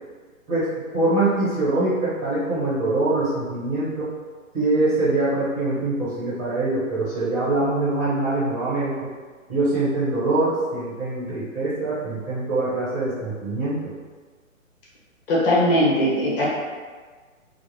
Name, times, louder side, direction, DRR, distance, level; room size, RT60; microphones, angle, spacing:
voice 1, 0.5-4.1 4.5-9.0 9.5-13.9, right 2 dB, 20° right, -11 dB, 1.2 m, -23 dB
voice 2, 15.3-16.5, equal, 40° left, -6 dB, 1.0 m, -19 dB
3.7 x 2.1 x 3.1 m, 1.5 s
hypercardioid pair, 140°, 41 cm